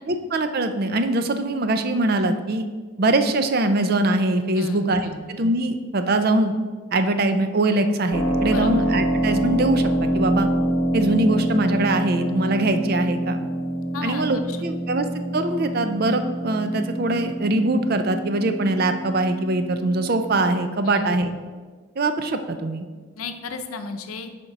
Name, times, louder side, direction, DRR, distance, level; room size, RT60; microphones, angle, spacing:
voice 1, 0.3-2.7 3.0-6.5 6.9-10.5 10.9-13.4 14.0-15.1 15.3-21.3 22.0-22.9, right 2 dB, 45° right, 8 dB, 0.5 m, -22 dB
voice 2, 4.5-5.2 8.5-8.9 13.9-14.6 20.8-21.2 23.2-24.3, left 4 dB, 85° left, 7 dB, 0.7 m, -34 dB
Keyboard (musical), 8.1-20.6, right 1 dB, 30° left, 1.5 m, -26 dB
6.6 x 4.4 x 5.9 m, 1.4 s
head